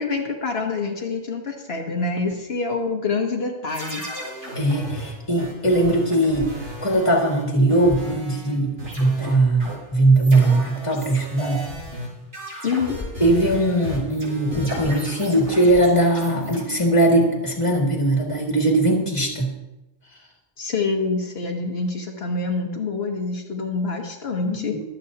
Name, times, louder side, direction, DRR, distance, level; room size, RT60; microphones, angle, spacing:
voice 1, 0.0-4.0 12.6-13.0 20.6-24.7, left 4 dB, 75° left, 1 dB, 1.4 m, -26 dB
sound 1, 3.7-8.5 8.8-16.6, equal, 90° right, 5.1 m, -35 dB
voice 2, 4.6-6.5 6.8-11.7 13.2-19.5 24.5-24.8, right 1 dB, 30° left, 0 dB, 2.2 m, -20 dB
23.5 x 8.3 x 2.9 m, 0.98 s
omnidirectional pair, 1.0 m